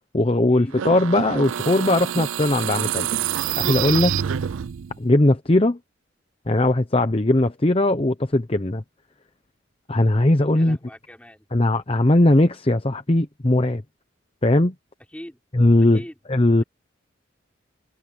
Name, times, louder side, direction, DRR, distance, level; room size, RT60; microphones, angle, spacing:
voice 1, 0.1-3.1 3.6-4.2 5.0-5.8 6.5-8.8 9.9-10.8 11.5-13.8 14.4-14.7 15.5-16.0 16.3-16.6, left 1 dB, 30° left, 0.8 m, -19 dB
sound 1, 0.7-5.0, right 9 dB, 85° right, 0.4 m, -26 dB
voice 2, 10.5-11.5 15.1-15.4 15.9-16.1, equal, 5° left, 3.9 m, -41 dB
head